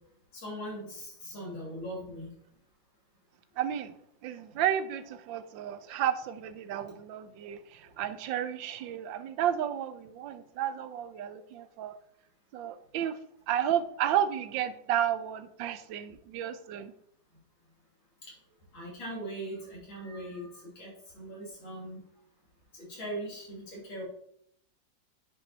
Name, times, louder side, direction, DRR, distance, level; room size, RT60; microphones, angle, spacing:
voice 1, 0.3-2.3 4.5-4.6 18.2-18.3 18.7-22.0 22.7-24.0, right 1 dB, 85° left, -4 dB, 3.9 m, -40 dB
voice 2, 3.6-3.9 4.2-11.9 12.5-13.2 13.5-16.9, right 10 dB, 80° right, 12 dB, 1.4 m, -32 dB
9.4 x 5.2 x 4.3 m, 0.69 s
omnidirectional pair, 2.1 m